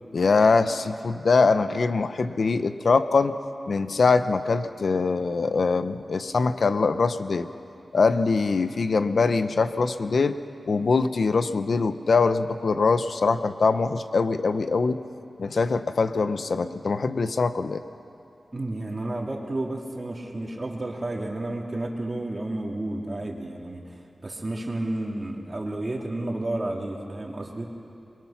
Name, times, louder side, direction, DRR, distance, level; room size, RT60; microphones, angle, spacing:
voice 1, 0.1-3.4 3.7-7.5 7.9-10.4 10.7-15.0 15.4-17.8, left 4 dB, 70° left, 11 dB, 0.8 m, -23 dB
voice 2, 18.5-27.7, right 1 dB, 35° right, 0 dB, 3.2 m, -31 dB
28.0 x 22.5 x 6.0 m, 2.6 s
wide cardioid pair, 75°, 0 cm